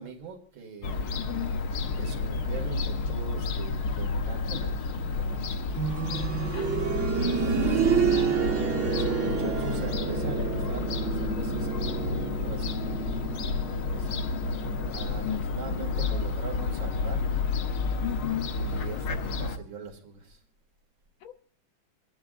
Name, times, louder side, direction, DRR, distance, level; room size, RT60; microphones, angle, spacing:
voice 1, 0.0-1.2 2.0-5.6 8.8-13.1 13.8-14.5 14.9-17.2 18.5-20.4, right 5 dB, 80° right, 3.0 m, -42 dB
Fowl / Gull seagull, 0.8-19.6, left 4 dB, 60° left, 1.2 m, -31 dB
voice 2, 1.1-1.6 6.5-6.7 7.2-8.4 8.8-9.5 15.2-16.0 18.0-18.5 21.2-21.3, left 12 dB, 80° left, 1.6 m, -37 dB
sound 1, 5.7-16.5 16.8-16.9 17.8-17.9, right 6 dB, 45° right, 1.3 m, -30 dB
29.0 x 10.5 x 2.5 m
omnidirectional pair, 2.1 m